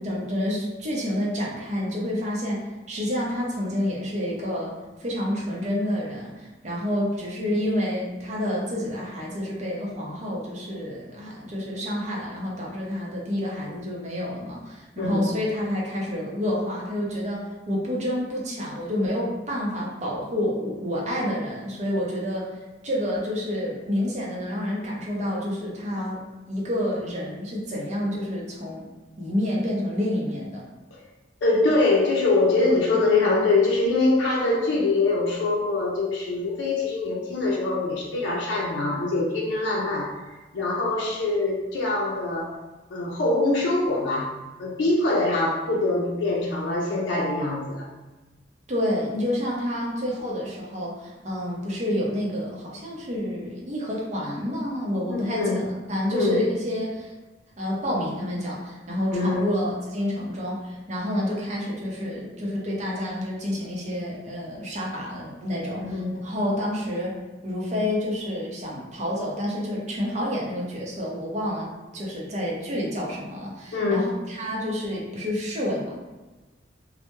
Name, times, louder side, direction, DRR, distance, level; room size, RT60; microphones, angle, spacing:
voice 1, 0.0-2.6 2.9-4.7 5.0-22.5 22.8-28.8 29.2-30.6 48.7-57.1 57.6-67.1 67.4-76.0, left 1 dB, 40° right, -4 dB, 0.6 m, -29 dB
voice 2, 31.4-40.2 40.5-42.6 42.9-44.3 44.6-47.9 55.1-55.6 56.1-56.5 59.1-59.5 65.8-66.2 73.7-74.1, left 2 dB, 85° left, -3 dB, 0.4 m, -24 dB
2.2 x 2.0 x 2.9 m, 1.2 s
head